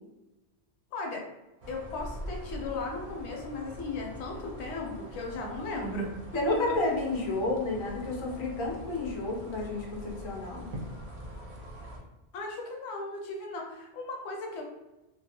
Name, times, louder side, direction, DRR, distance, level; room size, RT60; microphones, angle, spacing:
voice 1, 0.9-1.2 1.7-6.1 6.5-6.8 12.3-14.6, left 3 dB, 80° left, 0 dB, 0.9 m, -36 dB
sound 1, 1.6-12.0, equal, 55° right, 0.6 m, -43 dB
voice 2, 6.3-10.7, left 2 dB, 40° left, -1 dB, 0.4 m, -31 dB
2.3 x 2.2 x 2.7 m, 1.0 s
omnidirectional pair, 1.2 m